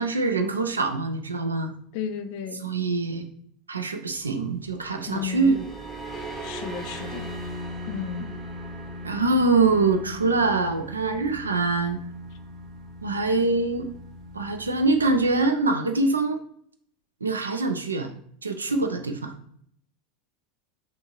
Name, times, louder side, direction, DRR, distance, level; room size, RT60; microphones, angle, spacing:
voice 1, 0.0-1.7 2.5-3.2 3.7-5.7 9.0-12.0 13.0-13.9 14.3-16.4 17.2-18.1 18.4-19.3, right 3 dB, 90° right, 5 dB, 0.3 m, -24 dB
voice 2, 1.9-2.6 5.1-5.5 6.4-7.3 7.9-8.3, left 8 dB, 60° left, 9 dB, 0.3 m, -33 dB
sound 1, 4.7-15.5, equal, 20° right, 0.8 m, -39 dB
2.6 x 2.6 x 2.9 m, 0.64 s
hypercardioid pair, 80°, 0 cm